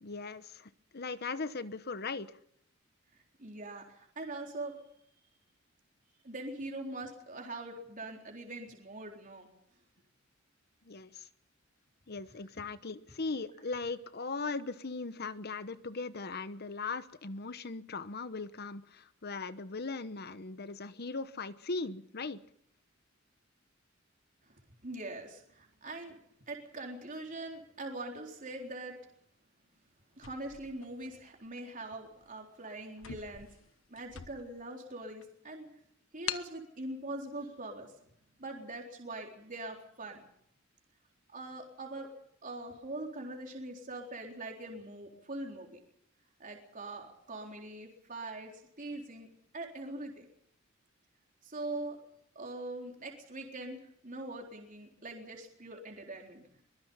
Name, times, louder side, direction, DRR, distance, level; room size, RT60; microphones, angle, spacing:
voice 1, 0.0-2.4 10.8-11.3 12.1-22.4, left 3 dB, 50° left, 13 dB, 1.0 m, -39 dB
voice 2, 3.4-4.8 6.2-9.5 24.4-24.5 24.8-26.2 26.5-29.0 30.2-33.5 33.9-35.7 36.1-37.9 38.4-40.2 41.3-42.1 42.4-45.8 46.4-48.5 48.8-50.3 51.4-52.0 52.4-56.6, right 2 dB, 40° right, 1 dB, 3.9 m, -42 dB
sound 1, 30.1-31.5 32.1-32.3 32.6-32.7 33.0-34.7 35.2-35.3 36.3-36.6, left 9 dB, 90° left, 1.2 m, -43 dB
23.5 x 21.5 x 5.6 m, 0.70 s
head